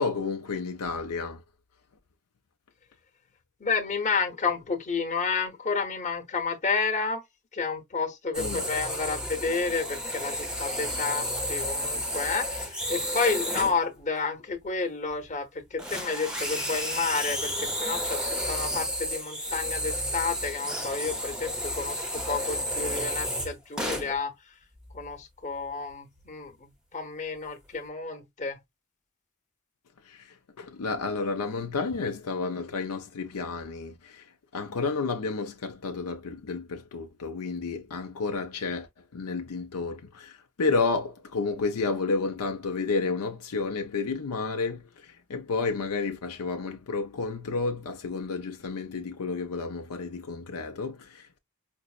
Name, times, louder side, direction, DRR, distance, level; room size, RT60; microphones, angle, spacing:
voice 1, 0.0-1.4 8.4-8.7 30.1-30.3 30.6-34.2 34.5-38.9 39.1-51.4, left 4 dB, 75° left, 0.5 m, -31 dB
voice 2, 3.6-7.2 7.5-18.2 18.5-24.3 24.9-28.6, left 4 dB, 35° left, 0.9 m, -30 dB
sound 1, 8.3-13.8 15.1-15.3 15.8-24.2 24.8-25.1 25.7-25.8 26.2-26.3, equal, 5° right, 0.6 m, -32 dB
5.1 x 2.0 x 2.3 m
head